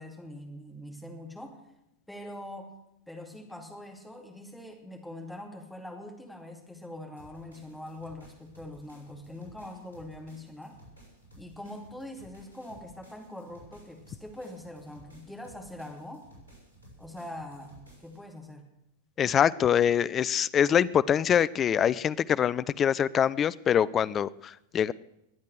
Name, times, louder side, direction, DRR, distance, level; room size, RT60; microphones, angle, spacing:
voice 1, 0.0-1.6 2.1-2.7 3.1-10.8 11.4-16.3 17.0-17.7 18.0-18.7, left 1 dB, 5° left, 2 dB, 2.5 m, -43 dB
sound 1, 7.2-18.2, right 1 dB, 80° left, 7.1 m, -55 dB
voice 2, 19.2-24.9, left 9 dB, 25° left, 18 dB, 0.4 m, -24 dB
21.5 x 8.4 x 6.5 m, 0.85 s
figure-of-eight pair, 90°, 0 cm